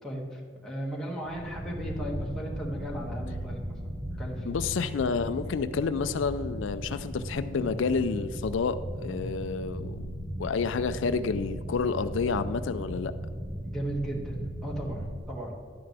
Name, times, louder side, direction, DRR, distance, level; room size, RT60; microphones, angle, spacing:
voice 1, 0.0-3.9 4.2-4.5 13.6-15.6, right 1 dB, ahead, -4 dB, 1.8 m, -36 dB
sound 1, 1.2-15.2, equal, 40° right, 1.3 m, -37 dB
voice 2, 4.5-10.0 10.4-13.1, left 5 dB, 75° left, 12 dB, 0.4 m, -29 dB
12.0 x 9.5 x 3.4 m, 2.1 s
head